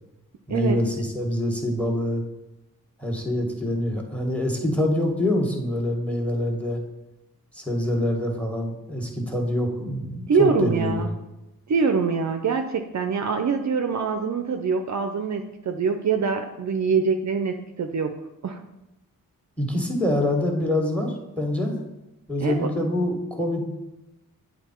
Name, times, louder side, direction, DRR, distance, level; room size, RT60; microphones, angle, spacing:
voice 1, 0.5-2.2 3.0-6.8 7.5-11.1 19.6-21.8 22.3-23.7, left 1 dB, 5° left, 2 dB, 1.7 m, -25 dB
voice 2, 10.3-11.1 11.7-18.1 18.4-18.6 22.4-22.7, right 5 dB, 50° right, 6 dB, 0.6 m, -24 dB
7.9 x 3.8 x 4.4 m, 0.96 s
cardioid pair, 50°, 37 cm